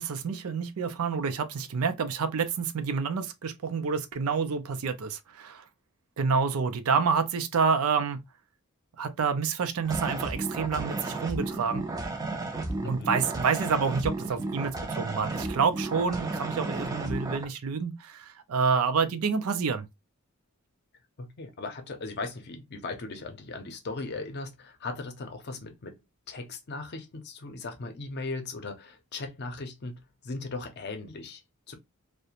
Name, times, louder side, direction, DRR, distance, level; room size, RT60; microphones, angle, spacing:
voice 1, 0.0-5.6 6.2-8.2 9.0-11.9 12.8-19.9, right 5 dB, 90° right, 0.4 m, -28 dB
sound 1, 9.8-17.4, right 2 dB, 15° right, 0.4 m, -33 dB
voice 2, 12.8-13.1 21.2-26.0 26.3-31.4 31.7-31.8, left 3 dB, 50° left, 0.6 m, -38 dB
2.4 x 2.1 x 2.8 m
head